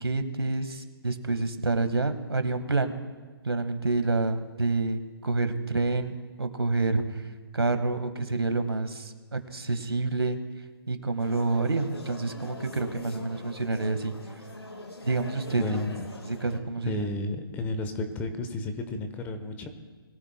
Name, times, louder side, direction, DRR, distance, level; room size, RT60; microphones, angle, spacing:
voice 1, 0.0-3.0 3.4-7.2 7.5-10.4 10.9-14.1 15.0-15.8 16.4-17.1, right 3 dB, 80° right, 8 dB, 1.6 m, -28 dB
sound 1, 11.2-16.6, left 2 dB, 85° left, 1.8 m, -43 dB
voice 2, 15.5-16.1 16.8-19.7, left 2 dB, 15° left, 8 dB, 0.9 m, -32 dB
22.0 x 13.5 x 2.2 m, 1.4 s
figure-of-eight pair, 140°, 13 cm